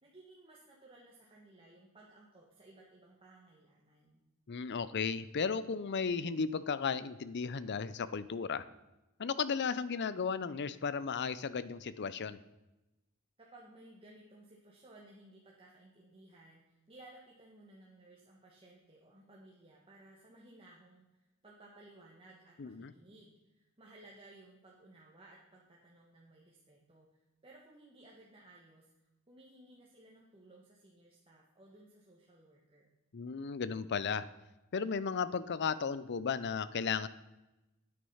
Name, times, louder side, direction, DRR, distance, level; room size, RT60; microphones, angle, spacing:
voice 1, 0.0-4.2 13.4-28.9 29.3-32.9, right 2 dB, 25° right, -3 dB, 1.5 m, -58 dB
voice 2, 4.5-8.6 9.2-12.4 22.6-22.9 33.1-34.3 34.7-37.1, left 5 dB, 50° left, 16 dB, 0.5 m, -35 dB
9.6 x 8.7 x 5.6 m, 1.0 s
head